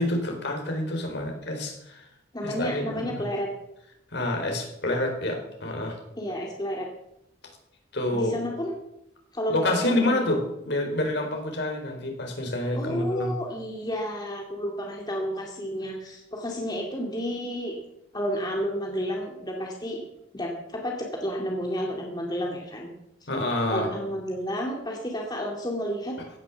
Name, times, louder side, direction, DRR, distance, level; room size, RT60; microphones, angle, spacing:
voice 1, 0.0-2.1 2.4-3.2 4.1-6.0 7.9-8.4 9.5-13.3 23.3-23.9, left 1 dB, 55° left, 2 dB, 4.2 m, -28 dB
voice 2, 2.3-3.5 6.2-6.9 8.1-8.7 9.3-10.2 12.7-17.8 18.1-20.0 20.3-22.9 23.7-26.2, equal, 20° left, 0 dB, 2.2 m, -31 dB
16.0 x 10.5 x 7.2 m, 0.82 s
head